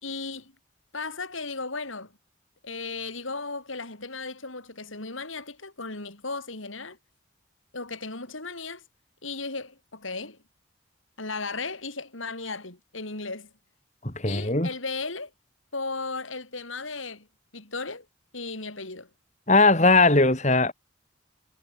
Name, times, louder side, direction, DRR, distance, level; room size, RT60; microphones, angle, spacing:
voice 1, 0.0-0.5 0.9-2.1 2.6-7.0 7.7-8.8 9.2-10.4 11.2-13.5 14.2-15.3 15.7-17.3 17.5-18.1 18.3-19.1, left 3 dB, 90° left, 6.1 m, -35 dB
voice 2, 14.0-14.7 19.5-20.7, left 3 dB, 35° left, 3.7 m, -19 dB
head